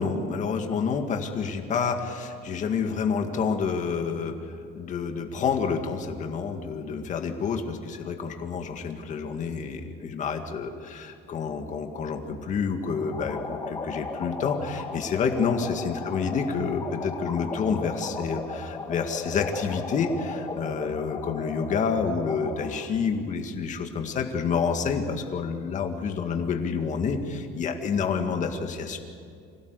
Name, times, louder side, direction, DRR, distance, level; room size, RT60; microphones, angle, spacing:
voice 1, 0.0-29.0, left 5 dB, 35° left, 5 dB, 1.9 m, -28 dB
sound 1, 12.9-22.9, left 4 dB, 20° left, 1.8 m, -36 dB
26.0 x 17.0 x 8.2 m, 2.3 s
cardioid pair, 160°, 21 cm